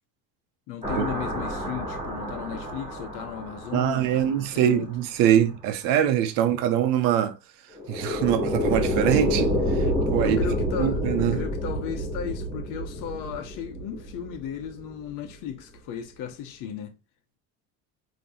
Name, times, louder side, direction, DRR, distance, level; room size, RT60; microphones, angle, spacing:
voice 1, 0.7-4.9 10.2-16.9, left 8 dB, 65° left, 1.1 m, -35 dB
sound 1, 0.8-4.7 7.7-14.9, equal, 15° right, 2.9 m, -28 dB
voice 2, 3.7-7.4 7.9-9.9 10.1-10.4 10.8-11.4, right 10 dB, 75° right, 0.9 m, -23 dB
5.0 x 3.0 x 2.8 m
supercardioid pair, 105°, 34 cm